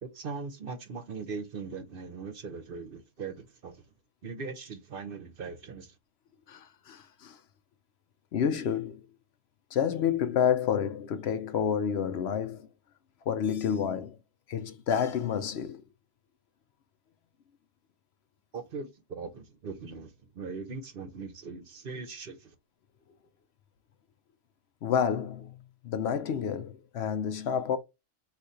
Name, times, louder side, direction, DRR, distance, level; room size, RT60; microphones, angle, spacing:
voice 1, 0.0-3.8 4.2-5.9 18.5-22.5, right 4 dB, 55° right, 0.8 m, -40 dB
voice 2, 6.5-7.4 8.3-9.0 9.7-12.7 13.3-14.2 14.5-15.8 24.8-25.6 25.8-27.8, left 8 dB, 65° left, 0.8 m, -29 dB
4.0 x 2.5 x 4.8 m
omnidirectional pair, 1.3 m